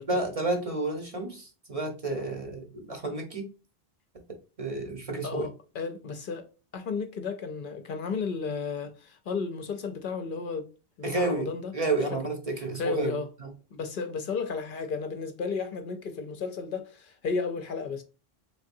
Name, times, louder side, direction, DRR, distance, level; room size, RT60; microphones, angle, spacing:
voice 1, 0.1-3.5 4.6-5.5 11.0-13.5, right 2 dB, 40° right, 0.8 m, -31 dB
voice 2, 5.2-6.5 6.7-10.7 11.0-11.7 12.6-13.3 13.7-18.0, left 5 dB, 60° left, 0.7 m, -33 dB
3.6 x 3.4 x 2.5 m
omnidirectional pair, 1.0 m